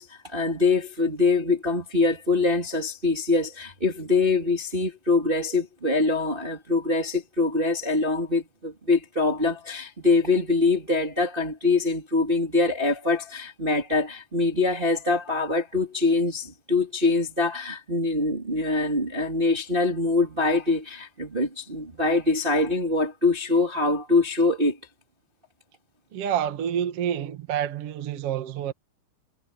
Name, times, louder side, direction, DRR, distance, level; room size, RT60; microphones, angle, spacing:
voice 1, 0.0-24.8, left 3 dB, 15° right, 2.2 m, -24 dB
voice 2, 26.1-28.7, right 9 dB, 75° right, 1.3 m, -28 dB
omnidirectional pair, 5.7 m